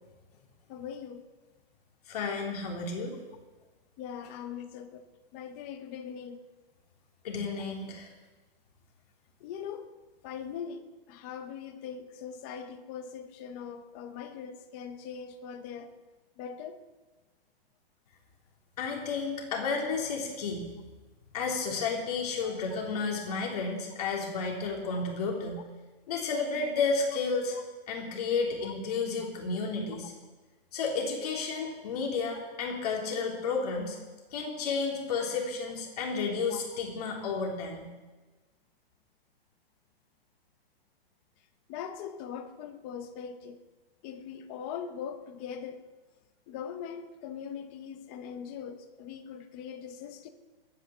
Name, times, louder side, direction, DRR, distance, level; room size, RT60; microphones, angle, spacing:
voice 1, 0.7-1.2 4.0-5.1 5.3-6.4 9.4-9.9 10.2-15.9 16.4-16.8 22.4-22.5 28.6-28.7 29.2-29.3 36.5-36.8 41.7-43.6 44.0-45.8 46.5-50.3, left 7 dB, 15° left, 7 dB, 0.6 m, -41 dB
voice 2, 2.1-3.2 7.2-8.1 18.8-20.7 21.3-25.6 26.1-27.5 27.9-30.1 30.7-34.0 34.3-37.9, left 4 dB, 40° left, 0 dB, 3.3 m, -32 dB
21.0 x 9.2 x 7.2 m, 1.2 s
hypercardioid pair, 175°, 30 cm